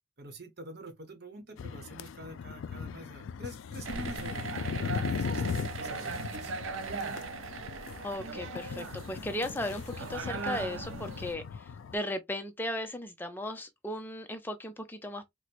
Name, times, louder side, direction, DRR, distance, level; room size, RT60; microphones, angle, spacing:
voice 1, 0.2-6.5, right 1 dB, 55° right, 0.9 m, -46 dB
sound 1, 1.6-12.0, left 6 dB, 75° left, 0.3 m, -38 dB
sound 2, 3.8-11.3, right 4 dB, 85° right, 0.5 m, -39 dB
voice 2, 8.0-15.3, left 1 dB, 10° left, 0.5 m, -36 dB
4.4 x 2.1 x 2.4 m
head